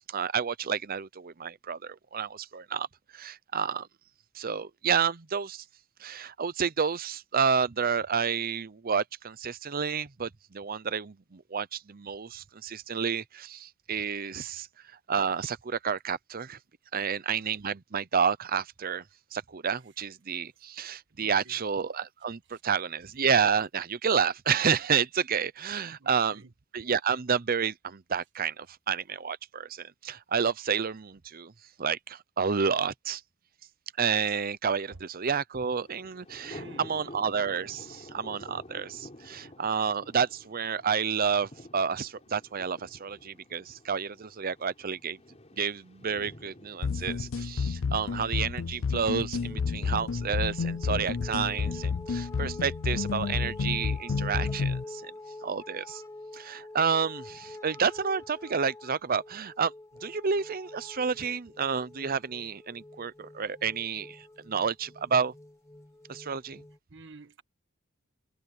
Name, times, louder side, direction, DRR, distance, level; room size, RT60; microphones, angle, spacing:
voice 1, 0.1-2.9 3.1-3.9 4.3-5.6 6.0-14.7 15.1-16.6 16.9-19.0 19.3-26.4 26.7-31.5 31.8-33.2 34.0-45.2 45.6-55.1 55.4-56.0 56.3-59.7 60.0-65.3 66.1-66.6, right 6 dB, 45° right, 0.7 m, -30 dB
voice 2, 21.1-21.6 22.5-22.6 26.0-26.5 34.9-35.0 36.4-37.1 66.9-67.4, right 3 dB, 60° right, 1.5 m, -50 dB
Thunder, 35.6-52.6, left 1 dB, 35° left, 3.8 m, -52 dB
sound 1, 46.8-54.8, left 5 dB, 70° left, 0.5 m, -30 dB
sound 2, 49.4-66.8, left 2 dB, 15° left, 1.4 m, -46 dB
head